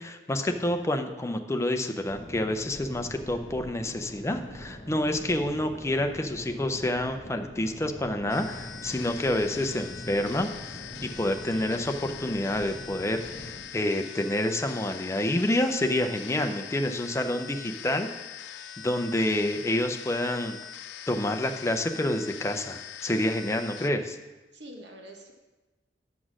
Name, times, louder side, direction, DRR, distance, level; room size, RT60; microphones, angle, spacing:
voice 1, 0.0-18.1 18.5-20.6 21.1-24.2, left 1 dB, 15° left, 6 dB, 0.5 m, -28 dB
sound 1, 2.1-13.6, equal, 45° left, 1.5 m, -43 dB
sound 2, 8.3-23.9, left 9 dB, 85° left, 0.4 m, -43 dB
voice 2, 11.5-11.9 17.5-17.6 24.5-25.3, right 1 dB, 70° right, 2 dB, 1.3 m, -46 dB
6.2 x 6.0 x 6.2 m, 1.1 s
head